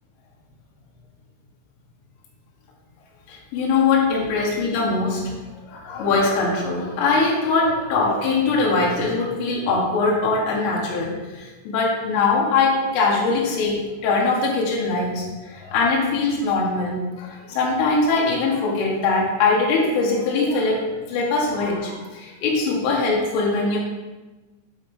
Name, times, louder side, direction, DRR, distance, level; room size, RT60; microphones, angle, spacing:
voice 1, 3.3-5.3 5.7-16.9 17.2-23.8, left 3 dB, 85° left, -4 dB, 4.1 m, -22 dB
10.5 x 4.4 x 5.4 m, 1.2 s
omnidirectional pair, 5.6 m